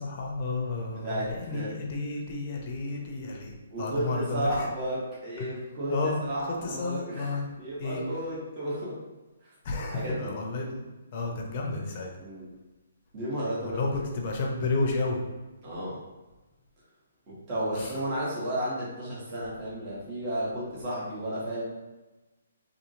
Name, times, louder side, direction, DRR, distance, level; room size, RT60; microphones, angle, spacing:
voice 1, 0.0-3.5 3.8-4.7 5.9-6.2 6.5-7.5 7.8-8.0 9.6-10.9 11.1-12.1 13.6-15.2 17.8-17.9, left 3 dB, 40° left, 0 dB, 0.6 m, -31 dB
voice 2, 0.9-1.8 3.7-9.0 9.9-10.3 12.2-12.5 13.1-13.8 15.6-16.0 17.3-21.6, right 1 dB, 30° right, -8 dB, 1.1 m, -33 dB
2.8 x 2.6 x 2.7 m, 1.1 s
figure-of-eight pair, 135°, 0 cm